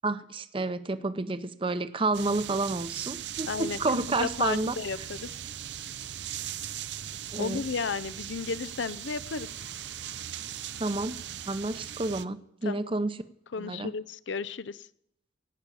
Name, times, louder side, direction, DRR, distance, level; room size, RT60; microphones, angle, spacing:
voice 1, 0.0-4.7 7.3-7.6 10.8-11.2 11.5-13.2 13.6-13.9, right 2 dB, 30° right, 12 dB, 0.7 m, -30 dB
sound 1, 2.1-12.2, right 10 dB, 70° right, 0.6 m, -39 dB
voice 2, 3.5-3.8 4.2-5.3 7.4-9.5 12.6-12.9 13.5-14.9, left 5 dB, 85° left, 15 dB, 0.5 m, -33 dB
17.0 x 6.2 x 8.4 m, 0.73 s
head